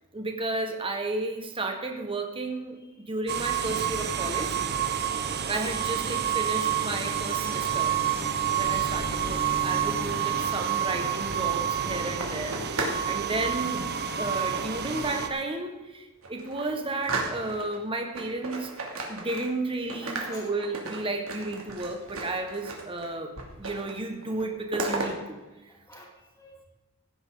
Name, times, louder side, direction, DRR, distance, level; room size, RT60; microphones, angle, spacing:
voice 1, 0.1-2.8 3.1-4.6 5.5-7.9 8.5-13.8 14.2-18.7 19.1-25.4, right 2 dB, 25° right, 4 dB, 1.5 m, -33 dB
sound 1, 3.3-15.3, right 8 dB, 45° right, 0.9 m, -29 dB
Bowed string instrument, 6.5-11.0, left 1 dB, 60° left, 2.3 m, -40 dB
sound 2, 11.2-13.1 13.3-13.7 14.5-15.3 15.8-15.9 16.2-17.8 18.1-19.6 19.9-23.1 23.4-24.0 24.2-25.1, right 3 dB, 70° right, 2.5 m, -35 dB
voice 2, 20.0-20.5 25.0-25.1 25.7-26.7, left 1 dB, 15° left, -3 dB, 3.5 m, -49 dB
16.5 x 10.0 x 3.9 m, 1.1 s
head